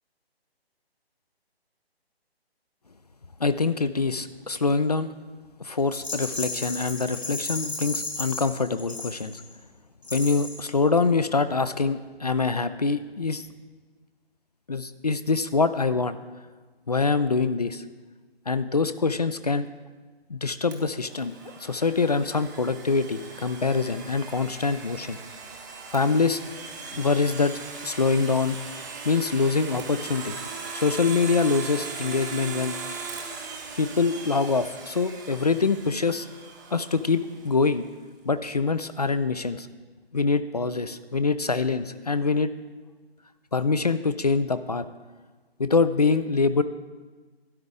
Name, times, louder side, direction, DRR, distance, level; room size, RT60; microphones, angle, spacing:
voice 1, 3.4-5.1 5.6-9.4 10.1-13.5 14.7-16.2 16.9-17.8 18.5-19.7 20.3-21.3 21.6-25.2 25.9-26.4 27.0-28.6 29.1-30.4 30.7-32.8 33.8-36.3 36.7-37.9 38.3-39.7 40.1-42.5 43.5-44.9 45.6-46.6, left 4 dB, 40° left, 12 dB, 0.4 m, -24 dB
Rattle, 5.9-9.6 10.0-10.7, left 2 dB, 85° left, 2.4 m, -34 dB
Domestic sounds home sounds, 20.7-37.5, right 4 dB, 20° right, 0.8 m, -39 dB
12.5 x 10.0 x 3.6 m, 1.4 s
figure-of-eight pair, 145°, 31 cm